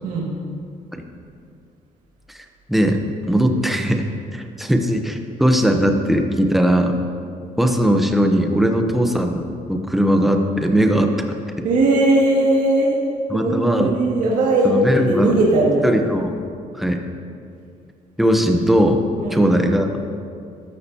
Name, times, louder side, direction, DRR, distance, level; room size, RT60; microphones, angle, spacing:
voice 1, 0.0-0.4 11.6-13.0 13.3-15.9 19.2-19.4, right 1 dB, 75° right, -5 dB, 2.1 m, -18 dB
voice 2, 2.7-3.0 3.3-4.0 4.3-7.0 7.6-11.1 13.3-13.9 14.6-15.4 15.8-16.4 16.7-17.0 18.2-19.0 19.3-19.9, equal, ahead, 4 dB, 0.7 m, -19 dB
13.5 x 12.5 x 2.8 m, 2.4 s
cardioid pair, 175°, 14 cm